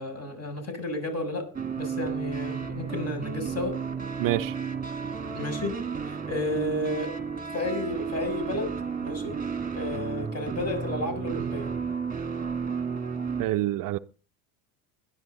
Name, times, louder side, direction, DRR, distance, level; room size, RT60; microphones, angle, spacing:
voice 1, 0.0-1.5 1.8-3.8 5.3-5.8 6.0-7.1 7.5-8.7 9.0-9.4 9.7-11.7, left 1 dB, 30° left, 7.1 m, -32 dB
sound 1, 1.5-13.4, right 6 dB, 20° right, 2.1 m, -32 dB
voice 2, 4.2-4.5 13.4-14.0, right 15 dB, 45° right, 0.7 m, -26 dB
21.0 x 12.0 x 3.9 m
hypercardioid pair, 70°, 46 cm